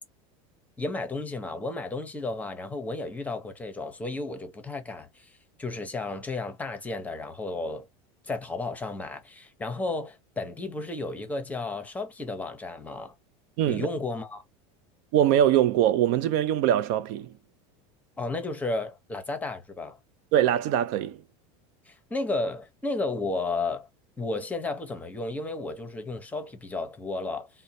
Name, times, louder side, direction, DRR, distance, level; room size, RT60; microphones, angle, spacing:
voice 1, 0.8-7.9 8.2-13.1 13.7-14.4 18.2-20.0 21.9-23.9 24.2-27.5, left 2 dB, 10° left, 0.7 m, -33 dB
voice 2, 13.6-13.9 15.1-17.3 20.3-21.2, right 11 dB, 55° right, 0.4 m, -22 dB
2.6 x 2.1 x 4.0 m
supercardioid pair, 150°, 15 cm